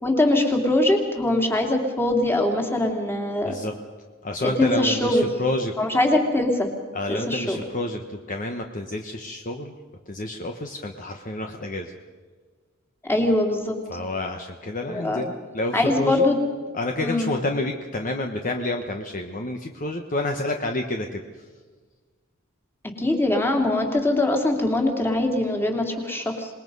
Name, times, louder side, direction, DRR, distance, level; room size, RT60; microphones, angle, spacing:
voice 1, 0.0-3.5 4.4-5.2 5.8-6.7 7.1-7.6 13.0-13.8 14.9-15.2 15.7-16.4 17.0-17.4 23.0-26.5, left 1 dB, 10° left, 2 dB, 2.7 m, -22 dB
voice 2, 4.2-5.7 6.9-9.7 10.1-11.9 13.9-16.2 16.7-21.5, left 2 dB, 40° left, 4 dB, 1.2 m, -29 dB
26.5 x 20.0 x 5.5 m, 1.5 s
head